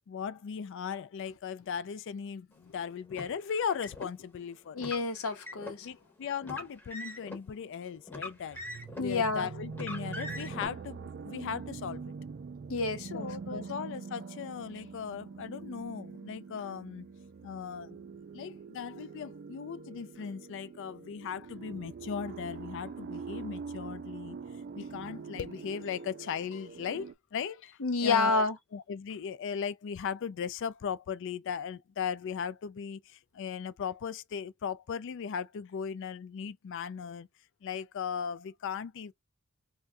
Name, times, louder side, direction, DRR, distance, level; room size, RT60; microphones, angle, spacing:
voice 1, 0.1-4.9 5.8-8.6 9.0-12.1 13.0-17.1 17.4-18.0 18.3-24.4 24.7-28.4 28.7-37.3 37.6-39.1, left 7 dB, 60° left, 0.4 m, -38 dB
Car, 3.1-4.1 4.8-5.8 6.4-7.4 8.1-9.1 9.7-10.7, left 2 dB, 10° left, 0.8 m, -42 dB
voice 2, 4.7-5.9 9.0-9.5 12.7-13.7 27.8-28.6, left 3 dB, 75° left, 0.8 m, -29 dB
sound 1, 8.4-27.1, right 5 dB, 45° right, 0.3 m, -44 dB
2.6 x 2.2 x 3.4 m
head